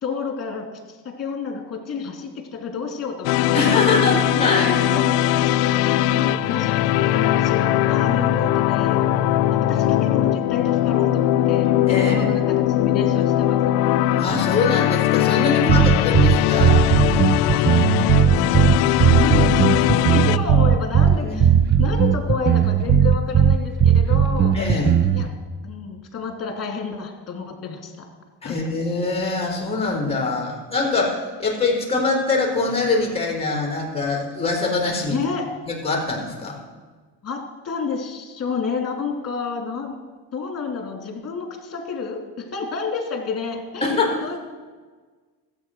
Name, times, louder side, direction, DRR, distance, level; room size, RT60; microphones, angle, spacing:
voice 1, 0.0-3.8 4.4-5.6 6.1-9.0 9.5-11.7 12.0-13.8 17.4-21.5 21.8-24.5 25.1-25.3 25.6-28.1 28.4-28.6 35.1-35.4 37.2-39.9 40.3-43.9 44.2-44.6, left 5 dB, 40° left, 3 dB, 3.0 m, -30 dB
sound 1, 3.2-20.4, left 13 dB, 90° left, 0.5 m, -20 dB
voice 2, 3.5-4.7 11.9-12.3 14.2-16.8 21.2-21.6 24.5-25.0 28.4-35.2 35.7-36.6 43.8-44.2, left 3 dB, 15° left, 0 dB, 3.7 m, -23 dB
sound 2, 15.7-25.3, right 8 dB, 30° right, 0.6 m, -17 dB
13.5 x 8.4 x 6.2 m, 1.4 s
cardioid pair, 100°, 39 cm